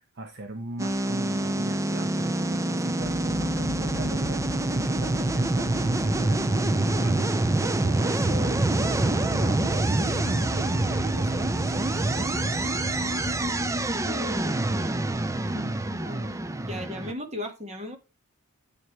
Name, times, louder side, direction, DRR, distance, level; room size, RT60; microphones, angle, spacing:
voice 1, 0.0-12.3, right 2 dB, 50° right, 0.9 m, -38 dB
sound 1, 0.8-17.1, right 2 dB, 15° right, 0.4 m, -26 dB
sound 2, 3.0-13.5, left 5 dB, 85° left, 0.5 m, -41 dB
sound 3, 9.2-14.4, equal, 15° left, 1.0 m, -45 dB
voice 2, 14.0-15.1 15.5-16.4 16.6-18.0, left 1 dB, 30° right, 1.7 m, -37 dB
9.4 x 8.4 x 3.2 m
head